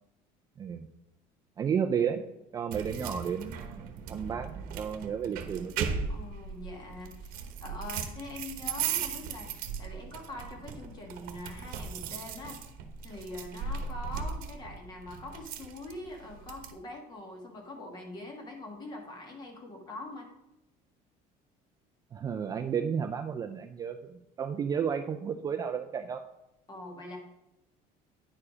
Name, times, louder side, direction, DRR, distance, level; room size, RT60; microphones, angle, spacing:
voice 1, 1.6-4.5 4.7-6.1 22.1-26.2, right 7 dB, 25° right, 6 dB, 0.3 m, -32 dB
sound 1, 2.7-16.7, right 6 dB, 65° right, 1.0 m, -38 dB
voice 2, 6.1-7.3 7.6-9.5 9.8-12.6 13.0-20.3 26.7-27.2, left 2 dB, 25° left, 2 dB, 1.6 m, -43 dB
9.6 x 4.8 x 4.9 m, 0.89 s
cardioid pair, 170°, 16 cm